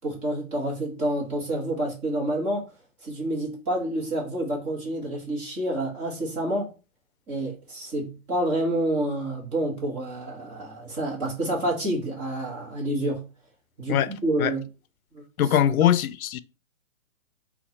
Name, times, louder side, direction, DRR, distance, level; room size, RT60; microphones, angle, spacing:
voice 1, 0.0-2.6 3.0-6.7 7.3-13.2 13.8-14.6 15.1-15.2, right 1 dB, 15° right, 1.0 m, -28 dB
voice 2, 15.4-16.4, left 10 dB, 85° left, 0.5 m, -21 dB
4.3 x 2.3 x 4.1 m
hypercardioid pair, 155°, 42 cm